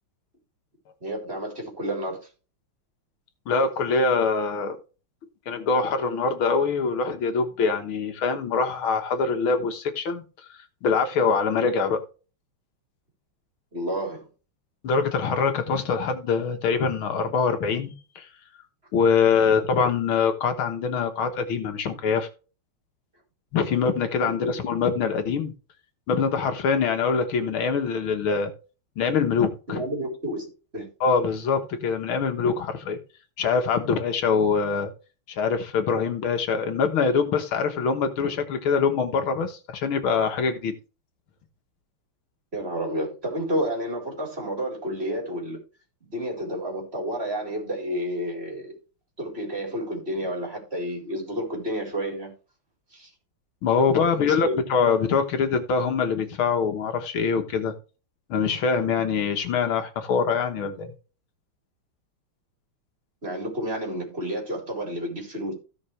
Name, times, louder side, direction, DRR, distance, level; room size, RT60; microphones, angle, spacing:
voice 1, 1.0-2.2 13.7-14.3 19.4-19.5 24.4-24.6 29.7-30.9 42.5-45.6 46.0-48.7 49.2-52.3 52.9-53.1 54.0-54.5 63.2-65.5, equal, 25° right, 4.5 m, -30 dB
voice 2, 3.5-4.8 5.5-12.0 14.8-18.3 18.9-22.3 23.5-25.5 26.1-28.5 29.0-29.8 31.0-33.0 33.4-34.9 35.3-40.7 53.6-57.8 58.3-60.9, left 5 dB, 75° left, 2.1 m, -24 dB
16.0 x 6.0 x 3.3 m
omnidirectional pair, 2.3 m